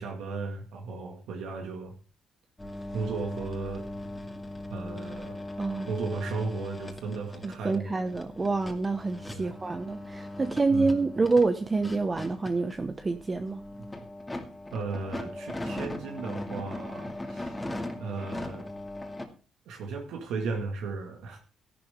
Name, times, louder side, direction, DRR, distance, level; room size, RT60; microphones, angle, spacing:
voice 1, 0.0-1.9 2.9-3.9 4.7-5.4 5.9-8.1 9.3-9.6 10.7-11.1 14.7-17.7 18.0-18.7 19.7-21.4, right 4 dB, 85° right, 3 dB, 2.1 m, -35 dB
sound 1, 2.6-19.3, left 1 dB, 15° left, 2.4 m, -39 dB
voice 2, 5.6-5.9 7.4-13.6, right 3 dB, 25° right, 8 dB, 0.9 m, -27 dB
13.0 x 11.5 x 3.7 m, 0.36 s
cardioid pair, 90°, 0 cm